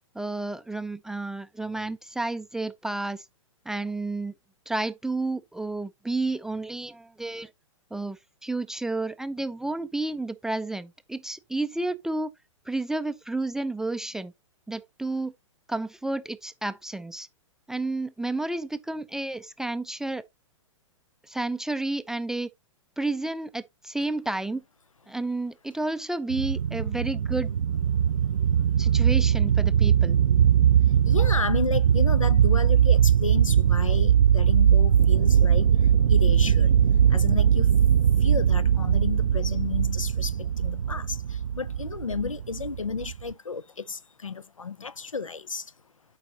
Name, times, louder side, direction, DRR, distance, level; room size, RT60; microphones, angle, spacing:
voice 1, 0.1-3.3 3.7-4.3 4.7-7.5 7.9-12.3 12.7-14.3 14.7-15.3 15.7-17.3 17.7-20.2 21.2-22.5 23.0-24.6 25.1-27.5 28.8-30.2, right 2 dB, 5° right, 0.3 m, -31 dB
sound 1, 26.3-43.3, right 8 dB, 70° right, 0.4 m, -21 dB
voice 2, 31.1-35.7 36.1-36.7 37.1-37.7 38.2-41.2 41.6-45.6, left 5 dB, 85° left, 0.6 m, -32 dB
12.0 x 4.8 x 2.8 m
figure-of-eight pair, 110°, 16 cm